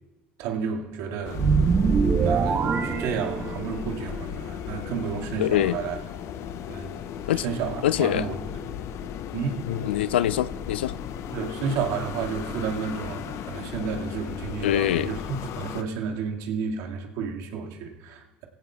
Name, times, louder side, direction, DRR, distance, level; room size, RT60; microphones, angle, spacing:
voice 1, 0.4-1.4 2.1-6.0 6.7-6.9 7.4-8.3 9.3-9.6 11.3-18.5, right 6 dB, 60° right, 1 dB, 2.0 m, -31 dB
sound 1, 1.2-15.8, left 8 dB, 55° left, 0.8 m, -36 dB
sound 2, 1.3-3.9, right 5 dB, 35° right, 1.2 m, -23 dB
voice 2, 5.4-5.8 7.3-7.4 7.8-8.3 9.7-10.9 14.6-15.1, left 12 dB, 80° left, 18 dB, 0.4 m, -24 dB
21.0 x 16.0 x 2.4 m, 1.2 s
hypercardioid pair, 65°, 6 cm